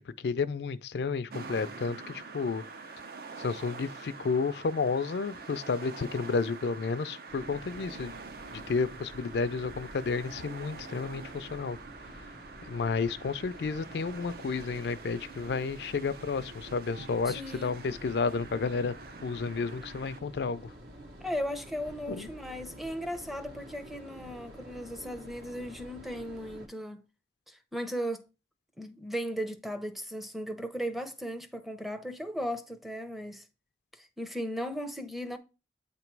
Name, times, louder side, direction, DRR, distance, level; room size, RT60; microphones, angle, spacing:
voice 1, 0.0-2.6 2.9-3.0 3.4-8.1 8.5-11.8 12.6-18.9 19.2-20.7 22.1-22.3, left 4 dB, 70° left, 0.4 m, -31 dB
sound 1, 1.3-20.2, right 4 dB, 55° right, 0.6 m, -46 dB
sound 2, 7.3-26.7, equal, 70° right, 1.5 m, -49 dB
voice 2, 17.3-17.7 21.2-27.0 27.5-28.3 28.8-33.5 33.9-35.4, equal, ahead, 0.6 m, -36 dB
8.6 x 3.0 x 4.6 m
head